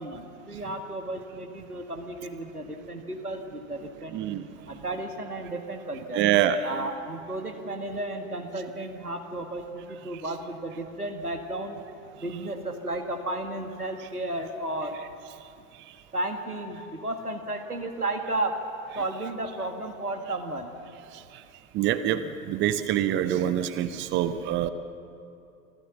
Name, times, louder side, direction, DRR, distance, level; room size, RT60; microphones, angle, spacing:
voice 1, 0.0-4.2 4.5-6.2 6.6-11.8 12.1-15.0 15.6-15.7 16.1-18.6 18.9-20.7, right 2 dB, 90° right, 5 dB, 1.8 m, -33 dB
voice 2, 4.1-4.4 6.1-6.6 21.7-24.7, right 11 dB, 25° right, 12 dB, 0.8 m, -25 dB
26.0 x 15.0 x 7.1 m, 2.6 s
figure-of-eight pair, 90°, 44 cm